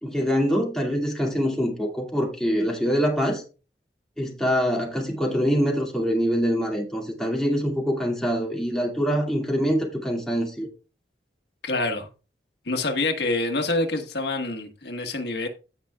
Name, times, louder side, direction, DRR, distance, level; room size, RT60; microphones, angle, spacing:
voice 1, 0.0-3.4 4.2-10.7, equal, 5° left, 2.4 m, -24 dB
voice 2, 11.6-12.1 12.6-15.5, left 2 dB, 70° left, 1.6 m, -26 dB
16.5 x 5.6 x 2.4 m
head